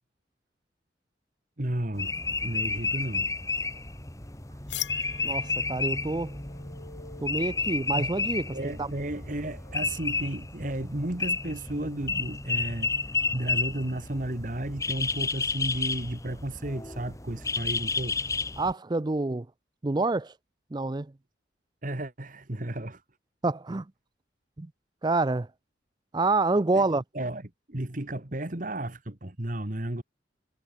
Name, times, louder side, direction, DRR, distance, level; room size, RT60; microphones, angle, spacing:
voice 1, 1.6-3.3 7.9-8.1 8.5-12.9 13.3-18.2 21.8-23.0 26.7-30.0, right 1 dB, 45° right, 1.8 m, -33 dB
sound 1, 1.9-18.7, left 4 dB, 15° left, 2.1 m, -32 dB
sound 2, 4.7-10.2, left 12 dB, 75° left, 2.0 m, -43 dB
voice 2, 5.2-6.3 7.2-8.5 8.8-8.9 18.6-19.5 19.8-20.3 20.7-21.1 23.4-23.8 24.6-24.7 25.0-25.5 26.1-27.0, right 3 dB, 25° right, 0.5 m, -27 dB
head